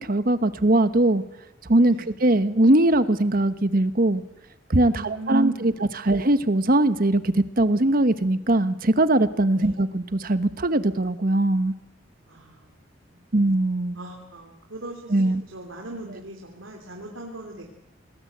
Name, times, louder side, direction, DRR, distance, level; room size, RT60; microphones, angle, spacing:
voice 1, 0.1-1.2 1.7-4.2 4.7-11.7 13.3-14.0 15.1-15.4, right 1 dB, 45° right, 12 dB, 1.1 m, -21 dB
voice 2, 4.8-5.7 9.5-9.8 12.3-12.7 13.9-17.6, right 1 dB, 85° right, 1 dB, 3.3 m, -40 dB
27.0 x 20.0 x 8.0 m, 0.92 s
head